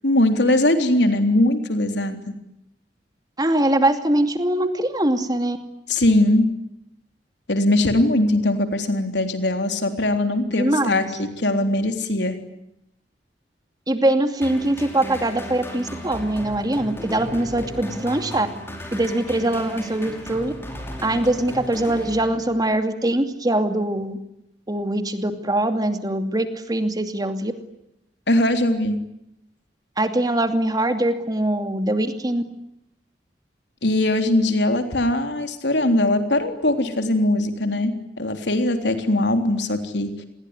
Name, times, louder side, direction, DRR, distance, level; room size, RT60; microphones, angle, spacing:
voice 1, 0.0-2.2 5.9-6.5 7.5-12.3 28.3-29.0 33.8-40.1, left 1 dB, 85° left, 6 dB, 3.6 m, -20 dB
voice 2, 3.4-5.6 10.5-11.1 13.9-18.5 18.9-20.5 21.0-24.2 24.7-27.5 30.0-32.4, right 1 dB, 25° right, 7 dB, 2.5 m, -22 dB
sound 1, 14.4-22.7, equal, 15° left, 5.8 m, -36 dB
28.0 x 21.5 x 9.8 m, 0.80 s
head